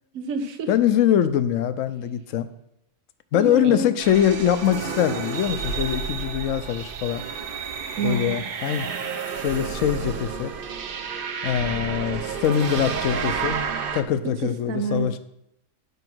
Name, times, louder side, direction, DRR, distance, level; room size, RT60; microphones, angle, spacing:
voice 1, 0.1-0.7 3.3-3.9 8.0-8.4 14.4-15.2, right 4 dB, 80° right, 7 dB, 1.3 m, -28 dB
voice 2, 0.7-2.5 3.3-7.2 8.0-8.9 9.4-10.5 11.2-13.6 13.9-15.2, left 10 dB, 70° left, 12 dB, 1.0 m, -23 dB
sound 1, 4.0-14.0, right 6 dB, 50° right, 0.7 m, -30 dB
9.8 x 4.8 x 6.1 m, 0.81 s
omnidirectional pair, 1.4 m